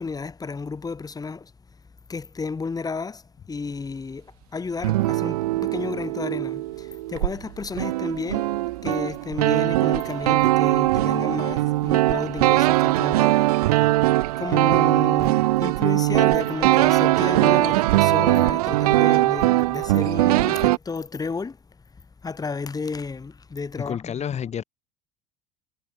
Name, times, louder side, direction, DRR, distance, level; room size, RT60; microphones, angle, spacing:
voice 1, 0.0-1.5 2.1-3.2 3.5-8.5 8.8-13.4 14.4-21.6 22.2-24.1, left 4 dB, 20° left, 2.2 m, -32 dB
sound 1, 4.8-7.4 7.6-20.8, right 18 dB, 75° right, 0.4 m, -21 dB
voice 2, 23.8-24.6, left 8 dB, 35° left, 2.2 m, -29 dB
hypercardioid pair, 70°, 20 cm